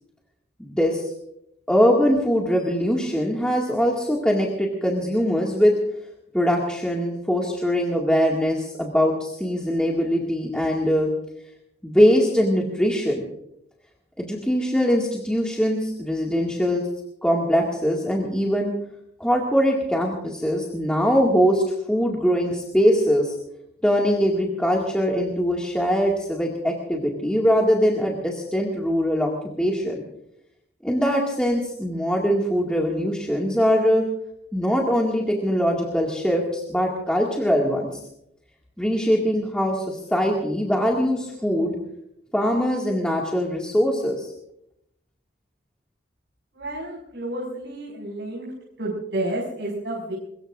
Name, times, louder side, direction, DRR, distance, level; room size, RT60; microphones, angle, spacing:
voice 1, 0.6-1.1 1.7-5.7 6.3-11.1 11.8-13.2 14.2-16.9 17.2-18.7 19.2-23.3 23.8-29.3 29.6-30.0 30.8-34.1 34.5-37.9 38.8-41.8 42.3-44.3, equal, 5° left, -3 dB, 2.1 m, -22 dB
voice 2, 46.5-48.5 48.8-50.1, right 1 dB, 70° right, -4 dB, 5.6 m, -30 dB
23.0 x 21.5 x 2.6 m, 0.77 s
head